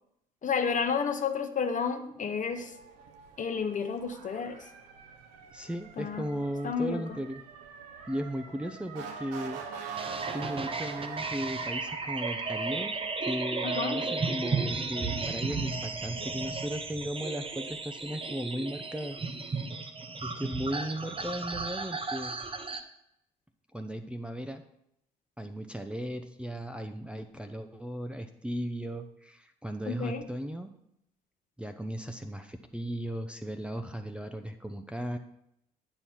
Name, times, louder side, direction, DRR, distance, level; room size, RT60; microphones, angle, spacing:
voice 1, 0.4-2.7 3.4-4.6 6.0-6.2 6.6-7.0 13.6-14.0 29.9-30.2, left 6 dB, 35° left, 7 dB, 1.0 m, -31 dB
Motor vehicle (road) / Siren, 2.5-16.0, right 5 dB, 75° right, 0.8 m, -45 dB
voice 2, 5.5-7.4 8.1-9.6 10.3-12.9 13.2-19.2 20.2-22.4 23.7-24.6 25.4-30.7 31.6-35.2, equal, 5° right, 5 dB, 0.6 m, -36 dB
sound 1, 10.0-22.8, right 4 dB, 25° right, 0.9 m, -34 dB
9.8 x 4.5 x 5.7 m, 0.78 s
figure-of-eight pair, 50°, 21 cm